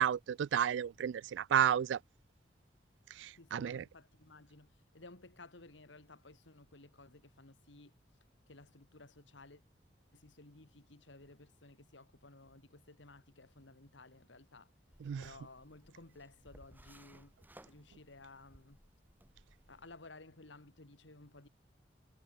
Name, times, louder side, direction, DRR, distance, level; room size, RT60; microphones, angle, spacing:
voice 1, 0.0-2.0 3.2-3.8 15.0-15.3, right 9 dB, 80° right, 0.3 m, -32 dB
voice 2, 3.4-7.9 8.5-9.6 10.1-14.7 15.2-17.3 17.7-18.8 19.7-21.5, left 2 dB, 85° left, 2.3 m, -56 dB
sound 1, 14.9-20.0, right 1 dB, 10° right, 6.8 m, -61 dB
head